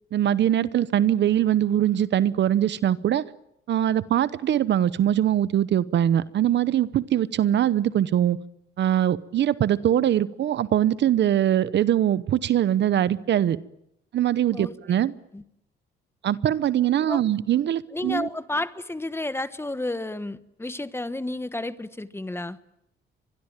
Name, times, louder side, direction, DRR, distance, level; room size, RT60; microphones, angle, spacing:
voice 1, 0.1-3.2 3.7-8.4 8.8-13.6 14.1-15.1 16.2-18.3, right 11 dB, 65° right, 17 dB, 0.9 m, -22 dB
voice 2, 17.9-22.6, left 2 dB, 10° left, 13 dB, 1.3 m, -31 dB
24.5 x 21.5 x 9.0 m, 0.80 s
cardioid pair, 90°, 20 cm